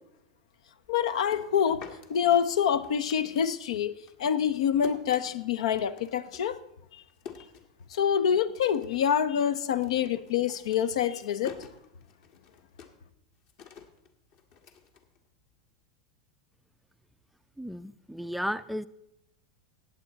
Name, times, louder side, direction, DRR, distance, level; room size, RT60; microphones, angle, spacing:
sound 1, 0.8-3.8 4.1-8.2 8.5-9.1 9.4-15.7, left 7 dB, 55° left, 1.5 m, -49 dB
voice 1, 0.9-1.8 2.1-6.6 6.9-7.0 7.9-11.6, left 8 dB, 75° left, 0.7 m, -26 dB
voice 2, 17.6-18.9, equal, ahead, 0.4 m, -34 dB
15.5 x 8.8 x 4.0 m
hypercardioid pair, 100°, 3 cm